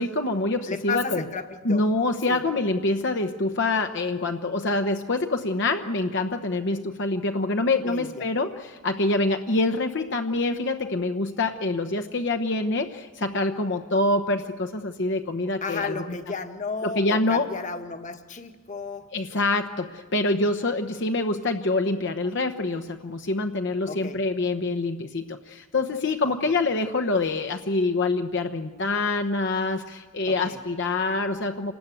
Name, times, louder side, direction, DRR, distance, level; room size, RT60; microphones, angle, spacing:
voice 1, 0.0-1.3 1.6-16.0 16.8-17.5 19.1-31.7, left 2 dB, 60° left, 7 dB, 1.0 m, -26 dB
voice 2, 0.7-1.8 2.3-2.4 7.8-8.3 15.6-19.1 23.9-24.2 30.3-30.6, left 4 dB, 35° left, 7 dB, 1.4 m, -33 dB
27.5 x 19.5 x 8.5 m, 1.4 s
head